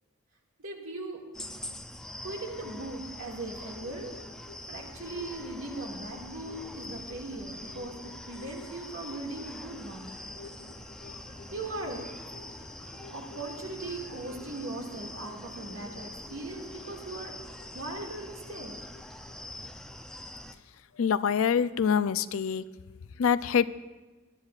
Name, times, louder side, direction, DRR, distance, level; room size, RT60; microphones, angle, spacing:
voice 1, 0.6-1.2 2.2-4.1 4.7-10.1 11.5-12.1 13.1-17.3 17.7-18.8, right 2 dB, 75° right, 0 dB, 2.1 m, -39 dB
sound 1, 1.3-20.5, left 1 dB, 5° left, 0.5 m, -44 dB
sound 2, 3.8-20.6 20.9-21.0, left 3 dB, 55° left, 0.9 m, -53 dB
voice 2, 21.0-22.7 23.2-23.7, left 7 dB, 75° left, 15 dB, 0.4 m, -25 dB
20.5 x 11.5 x 2.4 m, 1.2 s
head